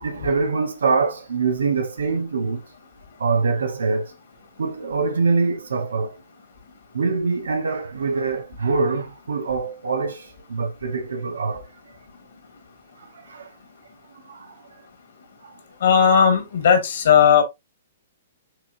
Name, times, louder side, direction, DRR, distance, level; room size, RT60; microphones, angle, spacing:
voice 1, 0.0-2.6 3.2-4.1 4.6-6.2 6.9-11.7 13.3-13.5 14.3-14.5, right 4 dB, 85° right, 0.7 m, -24 dB
voice 2, 15.8-17.4, left 7 dB, 70° left, 1.8 m, -16 dB
5.8 x 3.1 x 2.5 m
hypercardioid pair, 130°, 0 cm